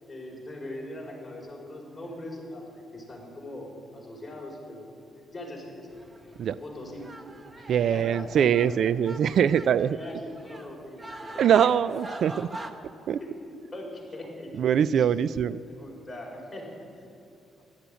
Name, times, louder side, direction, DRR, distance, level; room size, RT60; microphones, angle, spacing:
voice 1, 0.1-2.7 2.9-5.9 6.2-6.3 6.6-7.0 7.6-8.3 8.8-8.9 9.9-12.0 12.5-12.7 13.2-14.5 15.0-15.3 15.7-16.9, left 1 dB, 15° left, -2 dB, 5.1 m, -41 dB
sound 1, 5.9-12.7, right 2 dB, 25° right, 1.0 m, -44 dB
voice 2, 7.7-10.0 11.4-12.5 13.1-13.2 14.6-15.6, right 8 dB, 65° right, 17 dB, 0.4 m, -23 dB
14.0 x 11.5 x 9.1 m, 2.6 s
cardioid pair, 90°, 0 cm